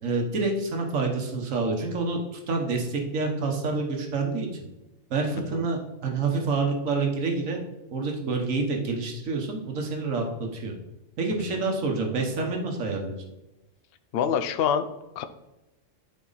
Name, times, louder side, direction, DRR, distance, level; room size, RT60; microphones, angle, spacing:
voice 1, 0.0-2.2 2.5-4.5 5.1-7.6 7.9-10.7 11.2-13.2, right 3 dB, 85° right, 2 dB, 1.6 m, -27 dB
voice 2, 11.3-11.6 14.1-14.9 15.2-15.3, left 8 dB, 60° left, 10 dB, 0.8 m, -26 dB
11.5 x 4.3 x 4.0 m, 0.98 s
omnidirectional pair, 1.3 m